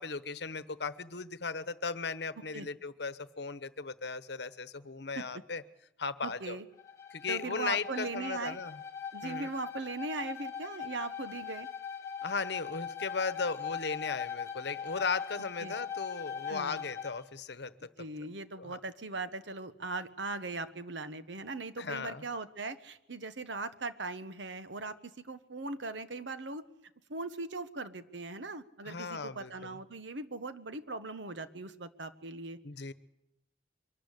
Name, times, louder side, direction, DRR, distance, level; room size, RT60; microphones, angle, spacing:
voice 1, 0.0-5.6 6.0-6.6 7.1-8.8 9.2-9.5 12.2-17.9 18.6-18.8 21.8-22.2 28.8-29.8 32.6-32.9, left 4 dB, 65° left, 14 dB, 1.0 m, -37 dB
voice 2, 6.2-6.6 7.3-8.6 9.1-11.7 15.6-15.7 16.5-16.8 18.0-26.6 27.1-32.6, right 3 dB, 75° right, 12 dB, 1.3 m, -39 dB
Bowed string instrument, 6.7-17.2, left 7 dB, 15° left, 1.6 m, -41 dB
24.0 x 13.0 x 9.9 m, 0.85 s
head